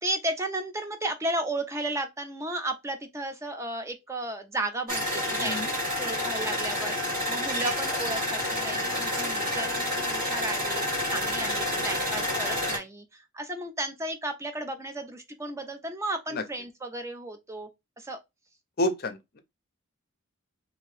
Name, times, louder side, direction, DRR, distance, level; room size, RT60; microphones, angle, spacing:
voice 1, 0.0-17.7 18.0-18.2, right 1 dB, 15° right, 0.4 m, -34 dB
sound 1, 4.9-12.8, left 1 dB, 40° right, 1.4 m, -29 dB
voice 2, 5.4-5.7 16.3-16.4 18.8-19.4, left 1 dB, 45° left, 0.5 m, -29 dB
2.8 x 2.6 x 3.1 m
head